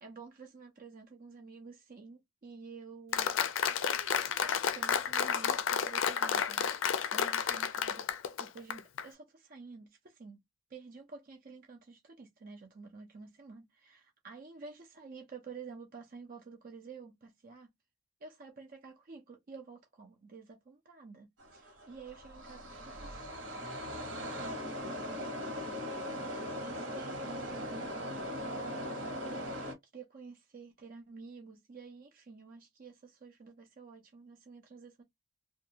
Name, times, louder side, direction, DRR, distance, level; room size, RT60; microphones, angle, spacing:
voice 1, 0.0-3.4 3.8-10.4 10.7-17.7 18.2-24.5 24.7-29.7 29.9-35.0, right 4 dB, 45° right, 0.4 m, -51 dB
Applause, 3.1-9.0, left 7 dB, 65° left, 0.4 m, -31 dB
sound 1, 21.4-29.7, equal, 60° right, 1.1 m, -39 dB
2.5 x 2.2 x 2.8 m
head